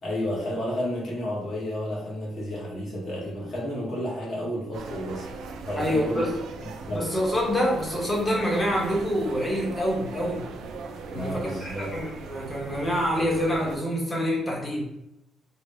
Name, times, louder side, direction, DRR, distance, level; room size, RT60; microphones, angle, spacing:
voice 1, 0.0-5.3 5.6-6.3 6.8-7.1 11.1-11.9, equal, 50° left, -5 dB, 1.5 m, -31 dB
sound 1, 4.7-13.8, right 4 dB, 80° right, 0.4 m, -39 dB
voice 2, 5.7-6.3 6.9-10.4 11.1-14.8, equal, 15° left, -2 dB, 1.1 m, -26 dB
3.6 x 2.1 x 3.2 m, 0.88 s
cardioid pair, 115°, 0 cm